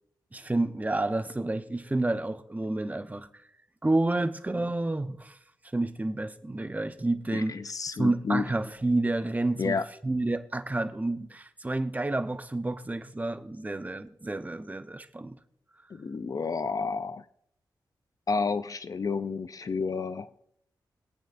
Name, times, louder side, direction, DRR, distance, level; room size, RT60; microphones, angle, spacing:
voice 1, 0.3-3.3 3.8-5.4 5.7-7.6 8.0-9.8 10.0-15.4, right 2 dB, 20° right, 0.8 m, -29 dB
voice 2, 7.3-8.5 9.6-9.9 15.9-17.2 18.3-20.3, left 4 dB, 45° left, 0.4 m, -30 dB
25.0 x 9.0 x 2.6 m
cardioid pair, 70°, 8 cm